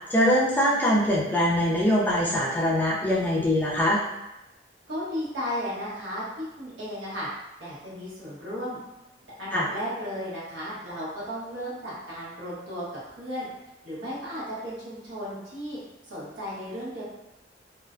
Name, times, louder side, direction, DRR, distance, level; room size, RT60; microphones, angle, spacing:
voice 1, 0.1-4.0 9.5-9.7, left 1 dB, 10° left, -6 dB, 0.4 m, -23 dB
voice 2, 4.9-7.3 7.6-8.8 9.4-13.5 13.8-15.8 16.0-17.0, equal, 85° right, -8 dB, 1.0 m, -34 dB
2.4 x 2.1 x 2.4 m, 0.94 s
head